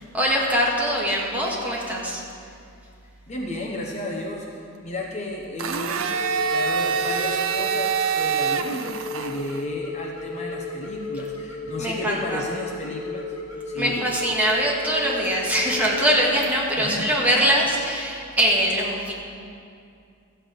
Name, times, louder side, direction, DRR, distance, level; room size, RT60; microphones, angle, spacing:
voice 1, 0.1-2.2 11.8-12.4 13.8-19.1, equal, 10° right, -5 dB, 1.8 m, -22 dB
voice 2, 3.3-13.3 13.7-14.1 16.8-17.0, left 1 dB, 30° left, -1 dB, 0.9 m, -33 dB
Domestic sounds home sounds, 5.6-9.6, right 6 dB, 70° right, 0.6 m, -25 dB
sound 1, 6.1-16.3, left 3 dB, 75° left, 1.3 m, -34 dB
14.0 x 5.7 x 8.2 m, 2.4 s
head